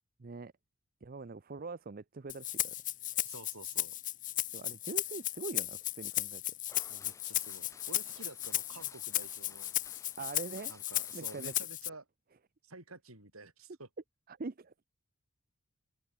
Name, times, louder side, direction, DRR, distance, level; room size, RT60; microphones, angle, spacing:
voice 1, 0.2-0.5 1.0-2.7 3.0-3.2 4.5-6.4 10.2-10.7 11.1-11.5 14.3-14.7, right 3 dB, 40° right, 0.6 m, -43 dB
Rattle (instrument), 2.3-11.9, left 14 dB, 35° left, 0.8 m, -35 dB
voice 2, 3.2-3.9 6.9-9.7 10.7-12.0 12.6-13.9, right 3 dB, 80° right, 6.6 m, -51 dB
Queen Street Mill automatic loom starts and runs, 6.7-11.7, left 3 dB, 15° left, 3.9 m, -58 dB
head